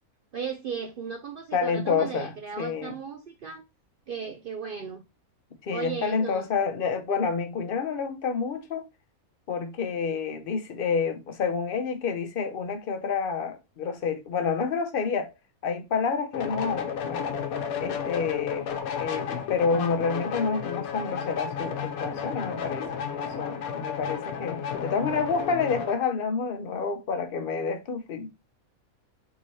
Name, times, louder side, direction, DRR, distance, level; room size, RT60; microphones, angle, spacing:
voice 1, 0.3-3.6 4.1-5.0 5.7-6.5, right 6 dB, 70° right, 0.5 m, -36 dB
voice 2, 1.5-2.9 5.6-8.9 9.5-15.3 15.6-17.3 17.8-18.7 19.0-28.3, left 5 dB, 50° left, 0.8 m, -29 dB
sound 1, 16.3-26.0, left 7 dB, 80° left, 1.2 m, -32 dB
4.0 x 3.8 x 3.1 m
omnidirectional pair, 1.5 m